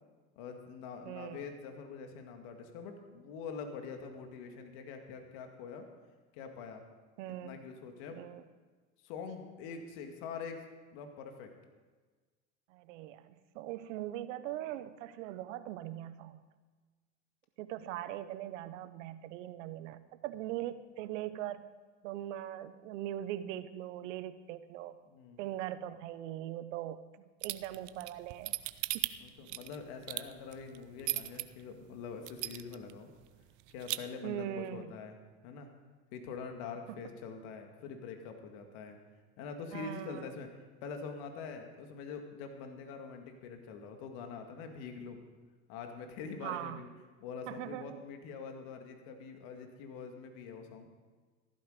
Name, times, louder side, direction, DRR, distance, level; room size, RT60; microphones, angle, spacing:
voice 1, 0.4-5.9 6.3-6.8 7.3-8.2 9.0-10.6 10.9-11.5 25.0-25.4 29.2-33.1 33.7-35.2 35.4-35.7 36.1-39.0 39.4-40.5 40.8-45.2 45.7-46.9 47.2-50.9, left 5 dB, 65° left, 5 dB, 2.1 m, -44 dB
voice 2, 1.1-1.4 7.2-7.5 8.1-8.4 12.7-16.4 17.6-21.7 22.0-25.0 25.4-28.6 28.9-29.1 34.2-34.9 36.9-37.0 39.7-40.3 46.4-46.8 47.5-48.0, right 13 dB, 70° right, 13 dB, 1.0 m, -41 dB
sound 1, 27.4-31.4 31.9-32.0 32.3-32.9 33.2-33.3 33.6-34.0, right 19 dB, 50° right, 0.7 m, -35 dB
14.5 x 12.5 x 5.0 m, 1.4 s
hypercardioid pair, 85°, 38 cm